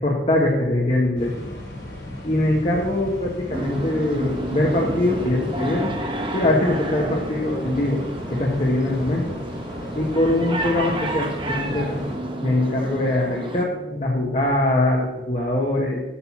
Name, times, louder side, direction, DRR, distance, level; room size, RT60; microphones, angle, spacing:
voice 1, 0.0-1.3 2.2-5.9 6.3-8.0 8.3-9.4 9.9-12.0 12.4-16.0, left 1 dB, 35° left, -2 dB, 1.5 m, -22 dB
sound 1, 1.2-12.2, left 1 dB, 80° left, 4.5 m, -36 dB
sound 2, 3.5-13.6, right 1 dB, 25° right, 1.1 m, -31 dB
sound 3, 10.7-15.4, right 1 dB, 60° left, 3.8 m, -42 dB
8.5 x 6.6 x 7.4 m, 0.98 s
head